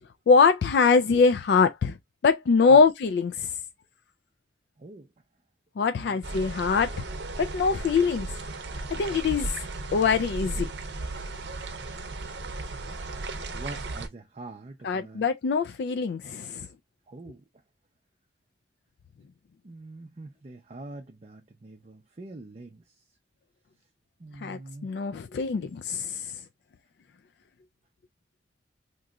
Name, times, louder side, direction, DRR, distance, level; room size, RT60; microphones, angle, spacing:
voice 1, 0.3-2.0 2.2-3.5 5.8-6.9 7.4-8.3 8.9-9.5 9.9-10.7 14.8-16.7 24.4-26.2, left 5 dB, 65° left, 0.3 m, -23 dB
voice 2, 5.9-6.5 13.5-15.3 17.1-17.4 19.6-22.8 24.2-24.9, right 2 dB, 35° right, 0.5 m, -43 dB
sound 1, 6.2-14.1, right 2 dB, 75° right, 0.6 m, -35 dB
2.9 x 2.3 x 3.6 m
head